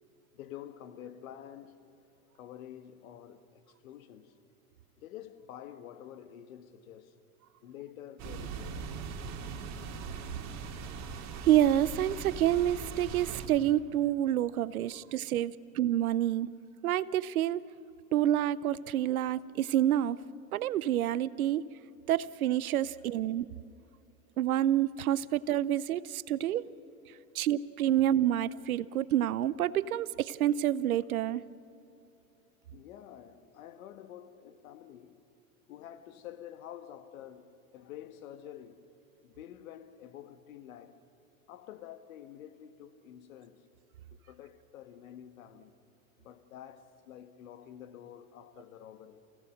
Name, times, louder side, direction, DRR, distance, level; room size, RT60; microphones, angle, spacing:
voice 1, 0.3-1.8 2.3-4.4 5.0-7.2 7.6-8.8 9.1-9.2 14.9-15.0 15.4-15.5 26.4-26.7 27.0-27.2 28.2-28.4 32.7-35.2 35.7-38.9 39.2-41.0 41.5-43.6 44.1-45.8 46.2-49.2, left 10 dB, 75° left, 1.5 m, -49 dB
sound 1, 8.2-13.5, right 5 dB, 40° right, 2.7 m, -40 dB
voice 2, 11.4-16.5 16.8-17.6 18.1-20.2 20.5-21.6 22.1-23.5 24.4-26.6 27.3-31.4, right 12 dB, 85° right, 0.7 m, -28 dB
28.5 x 17.0 x 6.6 m
hypercardioid pair, 100°, 42 cm